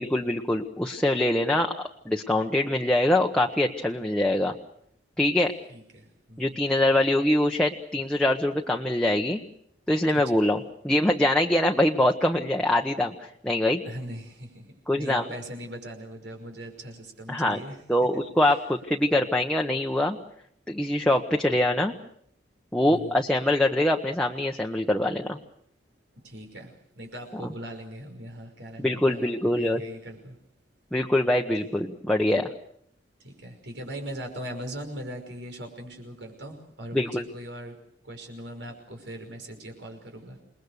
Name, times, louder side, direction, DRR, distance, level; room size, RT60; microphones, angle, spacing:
voice 1, 0.0-1.7 2.0-4.5 5.2-5.5 6.4-9.4 9.9-13.1 13.4-13.8 14.9-15.2 17.3-17.6 17.9-20.2 20.7-21.9 22.7-25.4 27.3-27.5 28.8-29.8 30.9-32.5 36.9-37.2, left 1 dB, 5° left, 0 dB, 1.1 m, -24 dB
voice 2, 5.7-6.6 10.3-10.4 13.8-14.7 14.9-17.8 18.4-18.5 22.9-23.2 26.2-30.4 31.6-31.9 33.2-37.8 38.0-40.4, equal, 90° right, 4 dB, 5.6 m, -40 dB
28.0 x 20.5 x 6.6 m, 0.68 s
head